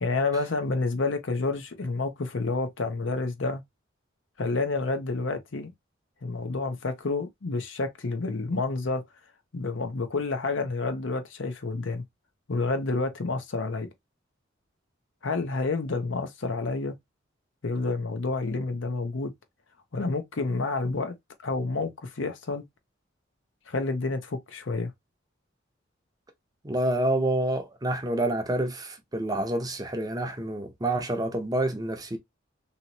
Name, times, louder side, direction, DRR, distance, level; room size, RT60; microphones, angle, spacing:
voice 1, 0.0-3.6 4.4-5.7 6.2-9.0 9.5-12.0 12.5-13.9 15.2-16.9 17.6-19.3 19.9-21.1 21.4-22.6 23.7-24.9, left 3 dB, 70° left, 0.7 m, -29 dB
voice 2, 26.6-32.2, right 1 dB, 20° right, 0.6 m, -28 dB
2.9 x 2.9 x 2.7 m
head